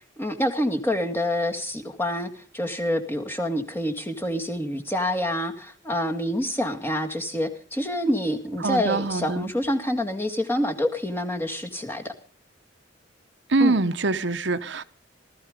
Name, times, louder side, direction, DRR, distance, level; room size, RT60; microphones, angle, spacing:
voice 1, 0.2-12.1 13.6-13.8, left 1 dB, 10° left, 2.0 m, -27 dB
voice 2, 8.6-9.5 13.5-14.8, right 3 dB, 65° right, 0.9 m, -24 dB
19.0 x 13.5 x 5.2 m
head